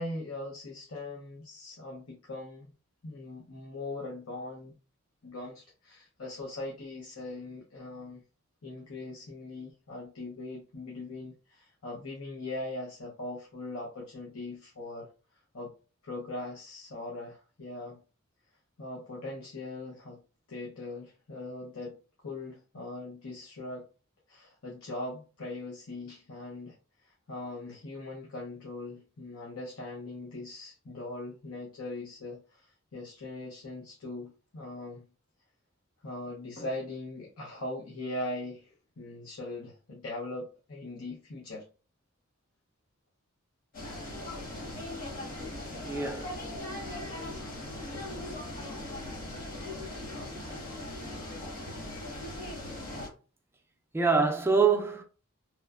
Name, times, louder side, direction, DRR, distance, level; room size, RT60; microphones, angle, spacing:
voice 1, 0.0-2.7 3.0-4.7 5.2-8.2 8.6-15.1 15.5-15.7 16.0-18.0 18.8-20.2 20.5-22.0 22.2-23.9 24.3-26.7 27.0-35.0 36.0-41.6, left 2 dB, 90° left, 0.7 m, -40 dB
sound 1, 43.7-53.1, left 1 dB, 45° left, 1.0 m, -39 dB
voice 2, 45.8-46.4 50.3-50.4 53.9-55.0, right 5 dB, 10° right, 0.3 m, -25 dB
3.0 x 2.1 x 2.3 m
head